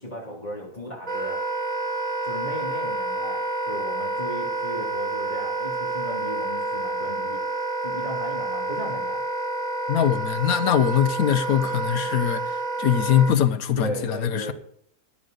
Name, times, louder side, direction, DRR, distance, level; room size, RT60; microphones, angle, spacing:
voice 1, 0.0-1.4 2.2-7.4 7.8-9.2 13.8-14.5, equal, 30° left, 3.0 m, -35 dB
Wind instrument woodwind instrument, 1.1-13.3, right 2 dB, 30° right, 1.2 m, -29 dB
voice 2, 9.9-14.5, left 9 dB, 75° left, 1.3 m, -22 dB
18.0 x 7.9 x 3.9 m
omnidirectional pair, 1.6 m